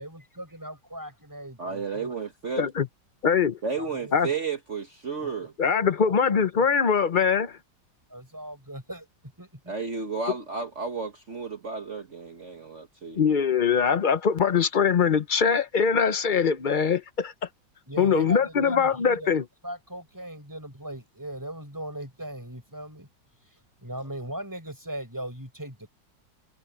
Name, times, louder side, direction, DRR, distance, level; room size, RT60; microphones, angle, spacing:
voice 1, 0.0-2.1 3.7-4.1 5.2-5.3 5.6-6.4 8.1-9.1 9.4-9.7 17.9-19.3 19.6-23.1 23.8-25.9, right 1 dB, 10° right, 5.6 m, -39 dB
voice 2, 1.6-2.7 3.6-5.5 9.7-13.2, right 5 dB, 45° right, 1.6 m, -32 dB
voice 3, 3.2-3.6 4.1-4.3 5.6-7.6 13.2-17.3 18.0-19.4, left 6 dB, 50° left, 0.5 m, -22 dB
omnidirectional pair, 1.9 m